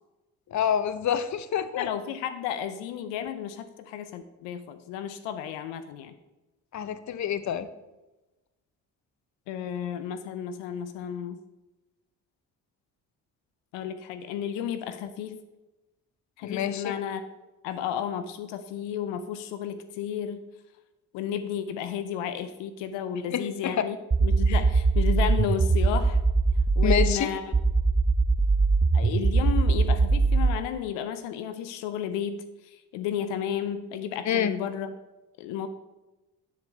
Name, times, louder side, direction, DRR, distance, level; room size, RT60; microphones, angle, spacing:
voice 1, 0.5-1.9 6.7-7.7 16.4-16.9 23.3-23.8 24.5-24.6 26.8-27.3 34.2-34.5, left 8 dB, 40° left, 12 dB, 0.7 m, -27 dB
voice 2, 1.8-6.1 9.5-11.4 13.7-15.4 16.4-17.2 17.6-20.4 21.1-24.0 24.2-26.2 26.8-27.4 28.9-32.4 32.7-34.9 35.4-35.7, left 9 dB, 80° left, 10 dB, 0.7 m, -32 dB
sound 1, 24.1-27.1 27.5-30.5, right 4 dB, 15° right, 0.5 m, -21 dB
8.6 x 7.3 x 3.4 m, 1.0 s
hypercardioid pair, 45°, 43 cm